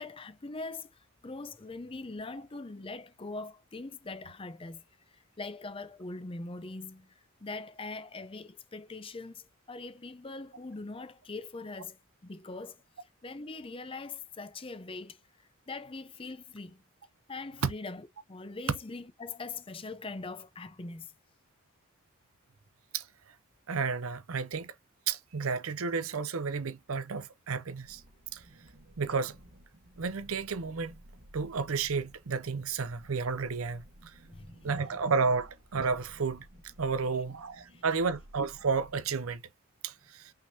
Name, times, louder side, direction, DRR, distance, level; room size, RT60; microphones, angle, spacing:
voice 1, 0.0-7.1 7.4-15.2 15.7-16.8 17.3-21.1 34.2-34.8 37.7-37.8, left 3 dB, 25° left, 0.6 m, -42 dB
voice 2, 23.7-24.7 25.1-28.0 28.3-28.4 29.0-29.4 30.0-30.9 31.3-34.1 34.6-36.5 36.8-39.4 39.8-40.3, right 5 dB, 90° right, 0.6 m, -32 dB
sound 1, 27.8-39.4, right 1 dB, 45° right, 1.1 m, -56 dB
5.6 x 3.4 x 2.7 m
head